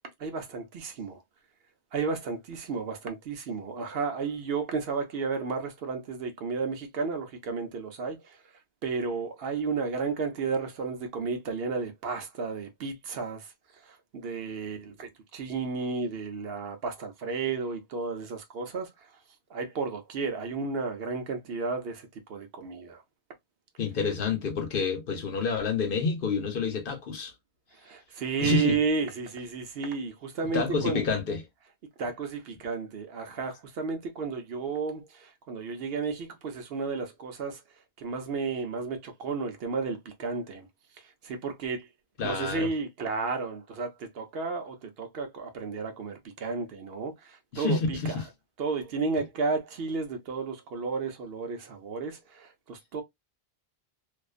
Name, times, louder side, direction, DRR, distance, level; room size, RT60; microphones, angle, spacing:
voice 1, 0.2-1.2 1.9-8.4 8.8-19.1 19.5-23.0 27.8-31.0 32.0-37.6 38.0-40.7 41.0-41.9 42.2-48.2 48.6-53.0, right 4 dB, 70° right, 0.9 m, -33 dB
voice 2, 23.8-27.3 28.4-28.8 30.5-31.4 42.2-42.7 47.5-48.2, left 5 dB, 60° left, 0.8 m, -28 dB
2.5 x 2.3 x 2.3 m
omnidirectional pair, 1.1 m